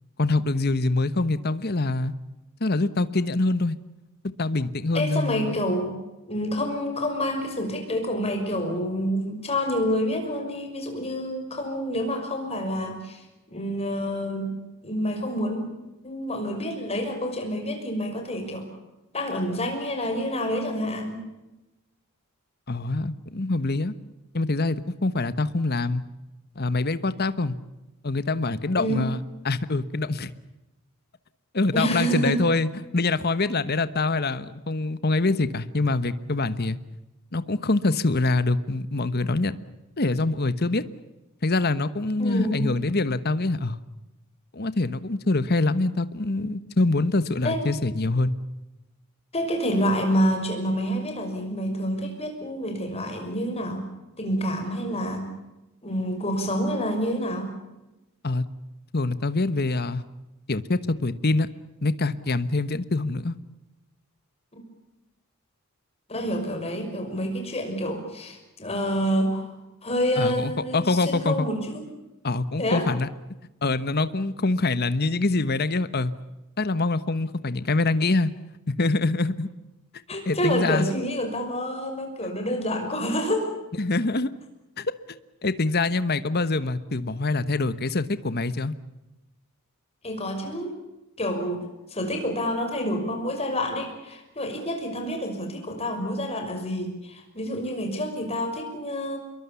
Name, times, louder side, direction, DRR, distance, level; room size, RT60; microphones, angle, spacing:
voice 1, 0.2-2.1 2.6-3.8 4.4-5.6 22.7-23.9 24.3-26.0 26.5-27.6 28.0-29.2 29.4-30.3 31.5-36.8 37.3-39.5 40.0-40.8 41.4-43.8 44.5-48.3 58.2-58.4 58.9-60.0 60.5-61.5 61.8-63.4 70.2-71.5 72.2-73.1 73.6-76.1 76.6-78.3 78.7-79.5 80.2-80.9 83.8-84.3 84.8-84.9 85.4-88.7, left 2 dB, 45° left, 14 dB, 1.2 m, -25 dB
voice 2, 4.9-5.9 6.3-14.5 14.8-15.7 16.0-18.7 19.1-21.2 28.8-29.0 31.7-32.4 42.2-42.6 47.4-47.7 49.3-53.9 54.2-55.3 55.8-57.5 64.5-64.6 66.1-69.5 69.8-71.9 72.6-72.9 80.1-83.5 90.0-90.8 91.2-99.2, equal, 30° left, 5 dB, 6.0 m, -28 dB
27.0 x 22.5 x 7.1 m, 0.99 s
head